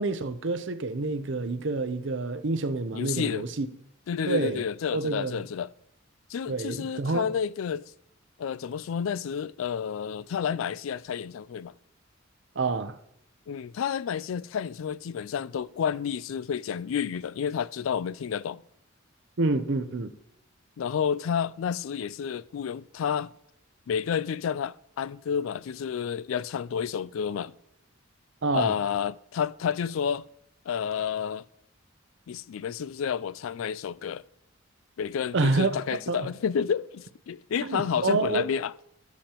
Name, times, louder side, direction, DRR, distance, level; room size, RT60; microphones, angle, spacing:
voice 1, 0.0-3.7 4.3-4.6 4.9-5.4 6.5-7.3 12.6-13.0 19.4-20.1 28.4-28.8 35.3-35.8 36.1-36.3 37.6-38.4, right 3 dB, 60° right, 0.7 m, -28 dB
voice 2, 2.9-3.5 4.1-5.7 6.3-7.8 8.4-11.7 13.5-18.6 20.8-23.3 23.9-27.5 28.5-30.2 30.7-31.4 32.3-34.2 35.0-38.7, left 7 dB, 80° left, 0.3 m, -30 dB
17.5 x 7.1 x 3.0 m
head